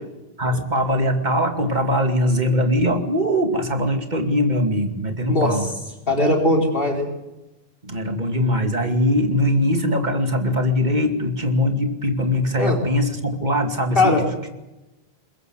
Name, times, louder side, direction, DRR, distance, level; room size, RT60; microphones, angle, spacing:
voice 1, 0.4-5.7 7.8-14.2, left 1 dB, 45° right, 6 dB, 2.7 m, -21 dB
voice 2, 6.1-7.1 12.5-12.8 14.0-14.2, left 1 dB, 60° left, 2 dB, 4.8 m, -19 dB
22.0 x 21.5 x 8.0 m, 1.0 s
omnidirectional pair, 1.0 m